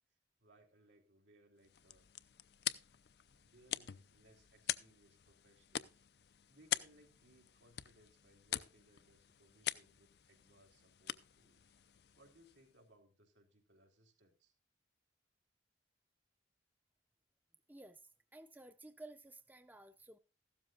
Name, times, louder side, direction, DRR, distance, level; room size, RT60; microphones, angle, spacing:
voice 1, 0.4-2.1 3.3-6.0 6.5-11.8 12.2-14.5, right 1 dB, 85° right, 3.5 m, -67 dB
sound 1, 1.6-12.8, left 11 dB, 60° left, 0.5 m, -45 dB
voice 2, 17.7-18.0 18.3-20.2, right 2 dB, 10° right, 0.6 m, -54 dB
15.0 x 12.5 x 2.5 m
head